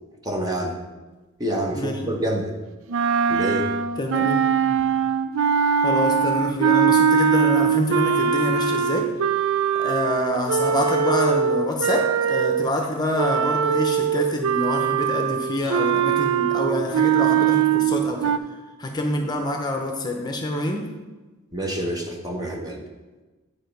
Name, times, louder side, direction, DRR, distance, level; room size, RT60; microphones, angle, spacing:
voice 1, 0.2-0.8 1.4-2.5 3.3-3.7 21.5-22.8, right 1 dB, 20° right, 1 dB, 0.9 m, -27 dB
sound 1, 2.9-12.7 13.2-18.4, right 7 dB, 70° right, 0.4 m, -21 dB
voice 2, 4.0-4.8 5.8-9.1 9.7-18.3 18.8-20.9, left 1 dB, 20° left, 2 dB, 0.7 m, -26 dB
8.6 x 4.9 x 5.2 m, 1.2 s
head